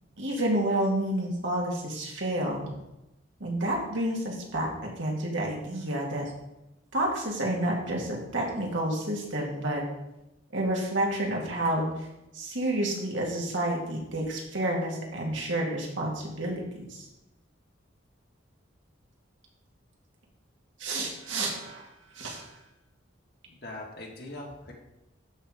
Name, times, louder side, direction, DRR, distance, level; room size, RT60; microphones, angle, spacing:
voice 1, 0.2-2.7 3.4-6.3 6.9-9.8 10.5-11.9 12.3-17.1 20.8-21.9 22.1-22.5, right 1 dB, 75° right, -1 dB, 2.3 m, -29 dB
voice 2, 23.5-24.7, left 2 dB, 55° left, -1 dB, 1.8 m, -41 dB
12.0 x 4.2 x 5.0 m, 0.92 s
head